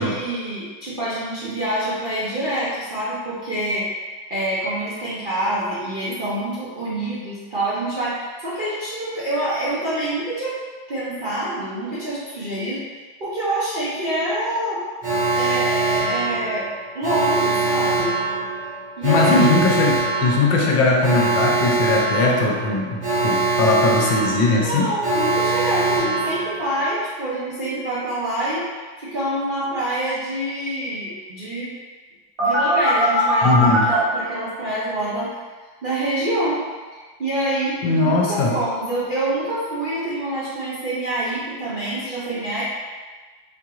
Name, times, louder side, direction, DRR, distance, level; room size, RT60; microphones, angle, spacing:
voice 1, 0.0-3.9 4.3-10.6 10.9-12.8 13.2-14.8 15.3-16.7 16.9-18.2 19.0-19.6 24.5-28.7 29.0-31.8 32.4-35.3 35.8-36.6 37.2-42.6, right 1 dB, 75° right, -10 dB, 0.4 m, -26 dB
Alarm, 15.0-26.9 32.4-33.9, right 3 dB, 35° right, 1.1 m, -23 dB
voice 2, 19.0-24.9 33.4-33.9 37.8-38.6, left 3 dB, 80° left, -1 dB, 1.3 m, -19 dB
4.3 x 2.8 x 2.4 m, 1.4 s
omnidirectional pair, 2.0 m